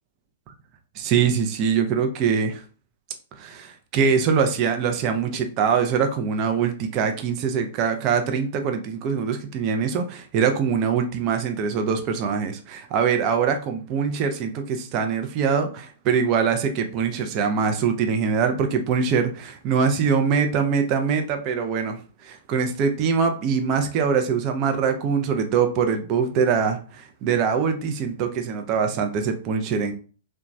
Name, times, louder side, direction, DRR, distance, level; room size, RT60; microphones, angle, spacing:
voice 1, 1.0-2.6 3.4-29.9, right 6 dB, 40° right, 5 dB, 0.5 m, -23 dB
2.9 x 2.2 x 2.5 m, 0.38 s
figure-of-eight pair, 110°, 0 cm